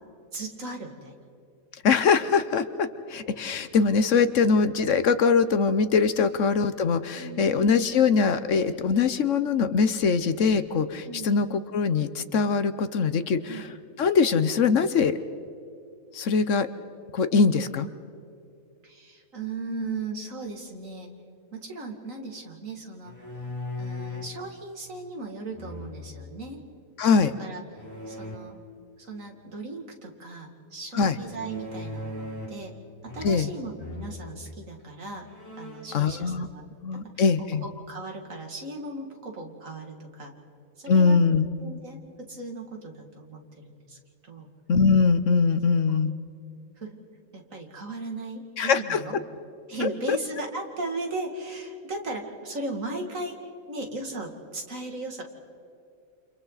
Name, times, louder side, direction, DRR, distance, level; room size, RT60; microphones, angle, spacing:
voice 1, 0.3-1.2 6.2-6.3 7.2-7.5 11.0-11.3 13.5-13.6 18.8-21.1 21.5-23.2 23.8-26.6 27.2-28.6 29.0-32.8 33.0-35.3 35.6-36.6 36.9-37.1 37.8-40.3 40.8-41.2 41.6-44.0 44.2-44.5 45.9-46.0 46.8-47.0 47.3-49.2 49.7-55.2, right 2 dB, 65° right, 2 dB, 2.7 m, -37 dB
voice 2, 1.8-13.7 14.0-15.2 16.1-16.7 17.1-17.9 27.0-27.3 30.9-31.2 33.2-33.5 35.9-36.5 36.8-37.6 40.9-41.5 44.7-46.1 48.6-49.0 50.1-50.2, left 5 dB, 65° left, 12 dB, 1.1 m, -22 dB
sound 1, 23.0-24.4 25.5-26.3 27.7-28.4 31.3-32.7 33.0-33.5 33.8-34.2 34.8-34.9 35.2-36.0, left 2 dB, 10° left, 4.3 m, -38 dB
29.5 x 28.0 x 4.1 m, 2.6 s
omnidirectional pair, 1.5 m